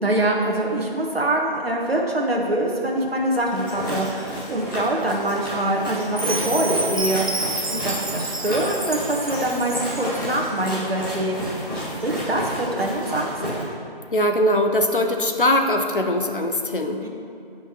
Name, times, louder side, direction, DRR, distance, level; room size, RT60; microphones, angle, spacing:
voice 1, 0.0-7.3 7.7-11.4 11.7-13.3 17.0-17.1, right 1 dB, 85° right, -1 dB, 1.4 m, -24 dB
sound 1, 3.4-13.6, equal, 20° left, 1.9 m, -31 dB
Chime, 6.2-10.2, right 2 dB, 55° right, 1.2 m, -29 dB
voice 2, 14.1-17.0, left 1 dB, 60° left, 5 dB, 0.9 m, -21 dB
16.5 x 5.7 x 3.0 m, 2.5 s
figure-of-eight pair, 175°, 29 cm